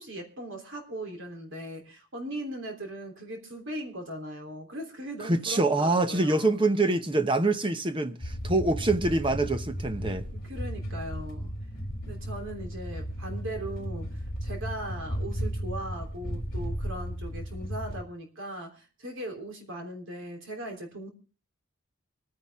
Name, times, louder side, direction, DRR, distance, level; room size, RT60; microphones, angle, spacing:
voice 1, 0.0-6.6 10.3-11.5 12.0-21.1, right 1 dB, 60° right, 3.4 m, -39 dB
voice 2, 5.2-10.3, right 2 dB, 25° right, 0.9 m, -25 dB
sound 1, 8.2-18.0, equal, 40° left, 3.9 m, -35 dB
24.5 x 10.0 x 3.6 m
head